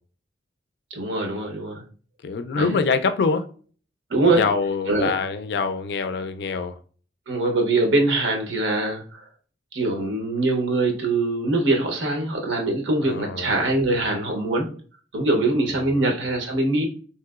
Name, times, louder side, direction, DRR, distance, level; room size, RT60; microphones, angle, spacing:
voice 1, 0.9-1.8 2.6-2.7 4.1-4.4 4.9-5.1 7.3-9.2 9.7-14.7 15.1-16.9, right 2 dB, 85° right, 0.8 m, -23 dB
voice 2, 2.2-3.5 4.2-6.8 13.0-13.5 15.9-16.1, left 4 dB, 60° left, 0.3 m, -25 dB
3.1 x 2.8 x 2.3 m
head